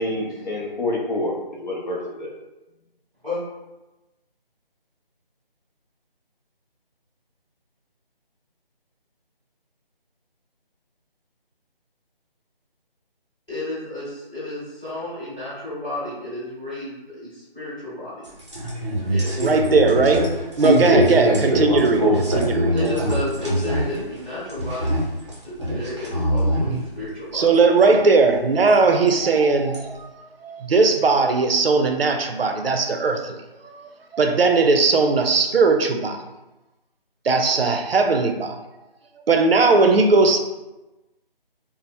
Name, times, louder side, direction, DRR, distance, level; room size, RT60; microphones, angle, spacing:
voice 1, 0.0-1.3 1.6-2.3, left 1 dB, 50° left, -3 dB, 0.6 m, -27 dB
voice 2, 13.5-18.3 19.1-19.3 22.7-25.0 25.4-27.5, left 2 dB, 5° left, -12 dB, 0.9 m, -32 dB
sound 1, 18.2-24.0 24.3-25.3 25.6-26.8 27.8-27.9 29.1-29.2 29.7-29.8, equal, 30° right, 0.5 m, -22 dB
voice 3, 19.4-20.3 20.6-22.7 27.3-30.1 30.4-33.4 33.6-33.8 34.1-36.2 37.2-38.6 39.3-40.4, right 3 dB, 80° right, 5 dB, 0.5 m, -18 dB
2.7 x 2.0 x 3.1 m, 1.0 s
figure-of-eight pair, 165°, 29 cm